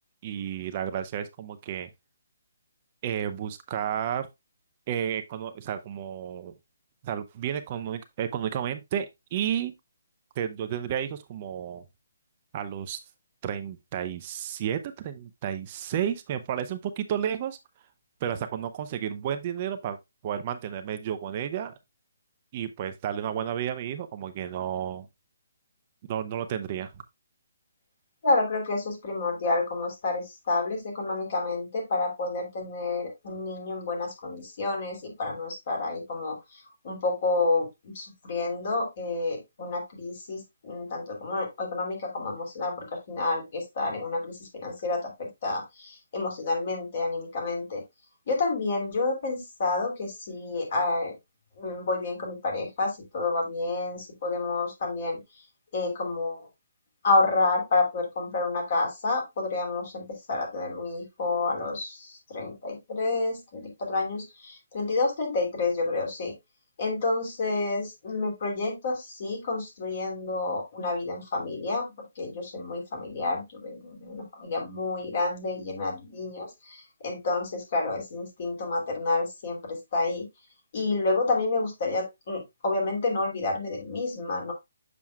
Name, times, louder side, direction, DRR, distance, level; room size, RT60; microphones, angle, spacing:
voice 1, 0.2-1.9 3.0-4.3 4.9-6.5 7.0-9.7 10.4-11.8 12.5-13.0 13.4-17.6 18.2-20.0 20.2-21.7 22.5-25.1 26.1-26.9, right 9 dB, 30° right, 0.5 m, -32 dB
voice 2, 28.2-47.8 48.3-51.1 51.6-55.2 55.7-56.5 57.0-66.3 66.8-71.9 72.2-80.3 80.7-84.5, left 3 dB, 45° left, 2.9 m, -29 dB
7.2 x 6.1 x 2.3 m
hypercardioid pair, 165°, 0 cm